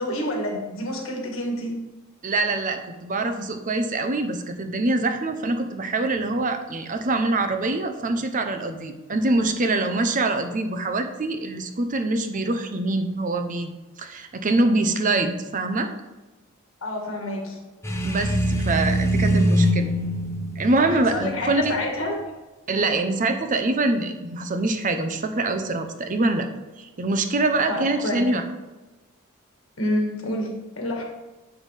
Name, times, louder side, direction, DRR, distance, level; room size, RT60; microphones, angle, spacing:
voice 1, 0.0-1.8 16.8-17.6 20.8-22.2 27.7-28.3 29.8-31.0, left 1 dB, 75° left, 1 dB, 1.6 m, -28 dB
voice 2, 2.2-13.7 14.0-15.9 18.0-19.9 20.6-21.7 22.7-26.5 26.8-28.4, right 2 dB, 40° right, 7 dB, 0.7 m, -24 dB
sound 1, 17.8-21.8, equal, 15° left, 0.7 m, -23 dB
8.1 x 5.8 x 3.3 m, 1.1 s
head